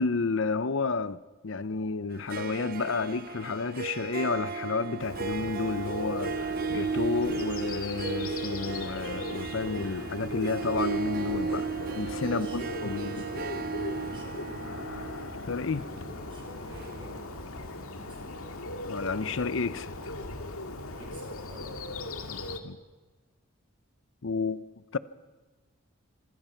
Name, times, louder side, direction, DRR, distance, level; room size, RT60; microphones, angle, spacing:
voice 1, 0.0-13.2 15.5-15.9 18.8-19.9 22.2-22.8 24.2-24.6 24.9-25.0, left 4 dB, 65° left, 0.6 m, -31 dB
Harp, 2.1-17.5, right 5 dB, 45° right, 0.8 m, -35 dB
Bird, 5.0-22.6, left 2 dB, 85° left, 2.0 m, -38 dB
voice 2, 12.3-14.9 15.6-18.6 20.9-21.8, equal, 25° right, 6.8 m, -50 dB
26.5 x 24.0 x 5.8 m
head